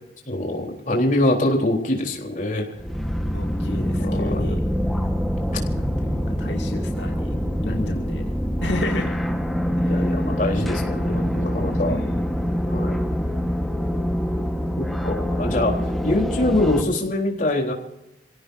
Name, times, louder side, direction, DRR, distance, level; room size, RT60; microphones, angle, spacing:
voice 1, 0.3-2.7 4.0-4.5 7.6-8.2 9.9-12.0 12.7-13.0 15.0-15.7 16.0-17.7, left 1 dB, 50° left, 0 dB, 3.9 m, -24 dB
sound 1, 2.8-16.8, equal, ahead, 1.4 m, -25 dB
voice 2, 3.3-4.6 5.7-7.4 7.6-8.2 8.6-9.2 9.8-10.3 11.9-12.3, left 2 dB, 90° left, 1 dB, 2.5 m, -33 dB
29.0 x 17.0 x 2.7 m, 0.85 s
head